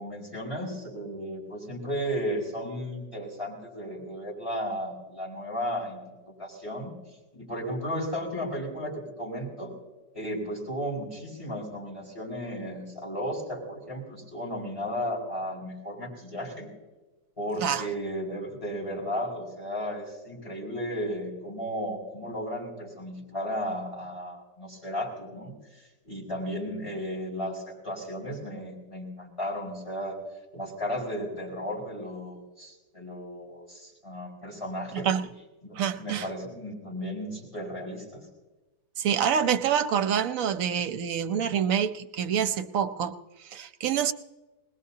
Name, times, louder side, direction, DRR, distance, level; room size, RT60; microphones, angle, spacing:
voice 1, 0.0-6.0 6.3-6.9 7.3-9.7 10.1-16.7 17.4-30.2 30.5-35.1 35.6-38.2, equal, 20° left, 4.8 m, -34 dB
voice 2, 34.9-35.3 35.7-36.3 39.0-44.1, right 8 dB, 65° right, 1.0 m, -27 dB
20.5 x 20.0 x 2.8 m
omnidirectional pair, 1.7 m